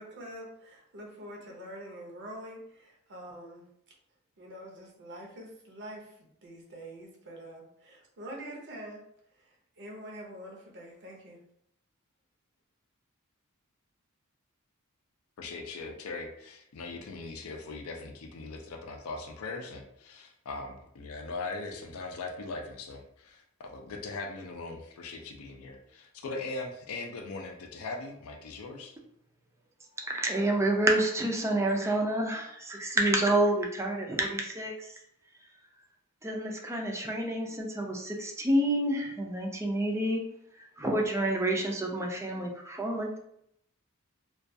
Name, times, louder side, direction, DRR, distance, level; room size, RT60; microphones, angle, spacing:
voice 1, 0.0-3.6 4.4-9.0 9.4-11.4, right 1 dB, 55° right, 0 dB, 0.6 m, -45 dB
voice 2, 15.4-28.9, left 3 dB, 70° left, 2 dB, 0.4 m, -40 dB
voice 3, 30.1-34.9 36.2-40.2 40.6-43.2, right 1 dB, 15° right, 0 dB, 0.4 m, -28 dB
2.3 x 2.3 x 2.6 m, 0.73 s
head